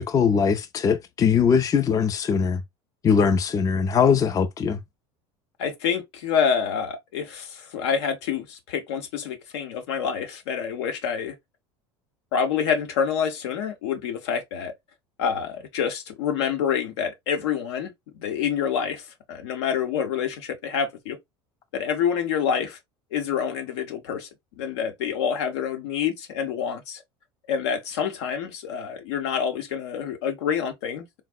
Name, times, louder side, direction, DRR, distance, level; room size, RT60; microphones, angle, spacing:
voice 1, 0.0-2.6 3.0-4.8, left 6 dB, 25° left, 0.4 m, -21 dB
voice 2, 5.6-11.3 12.3-14.7 15.2-17.9 18.2-21.2 21.7-22.8 23.1-24.3 24.6-27.0 27.5-31.0, left 7 dB, 80° left, 0.7 m, -27 dB
3.4 x 2.0 x 2.3 m
hypercardioid pair, 90°, 14 cm